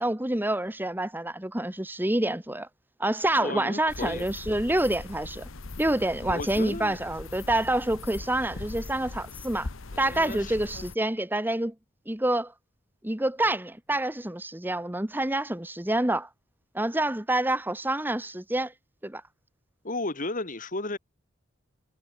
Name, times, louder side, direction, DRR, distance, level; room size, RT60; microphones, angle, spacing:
voice 1, 0.0-2.7 3.0-5.4 5.8-9.7 10.0-11.7 12.1-12.5 13.0-16.3 16.7-18.7 19.0-19.2, right 1 dB, 10° right, 1.2 m, -27 dB
voice 2, 3.4-4.2 6.2-7.0 9.9-10.9 19.8-21.0, left 2 dB, 40° left, 2.4 m, -34 dB
sound 1, 3.9-10.9, left 3 dB, 70° left, 1.2 m, -40 dB
head